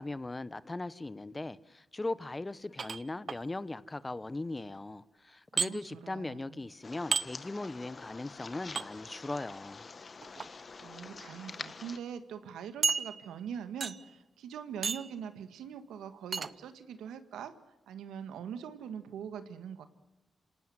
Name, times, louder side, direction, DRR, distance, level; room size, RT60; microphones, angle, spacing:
voice 1, 0.0-9.8, left 2 dB, 25° left, 17 dB, 1.1 m, -39 dB
sound 1, 2.8-3.4 5.6-5.7 7.1-7.3 8.7-8.9 10.2-10.5 11.2-11.3 11.7-11.8 12.8-13.4 13.8-14.1 14.8-15.2 16.3-16.5, right 5 dB, 55° right, 0.8 m, -32 dB
voice 2, 5.5-6.6 10.8-17.6 17.9-19.9, right 8 dB, 90° right, 10 dB, 1.6 m, -43 dB
sound 2, 6.8-12.0, left 4 dB, 50° left, 1.6 m, -47 dB
27.0 x 18.5 x 8.0 m, 0.99 s
supercardioid pair, 50°, 0 cm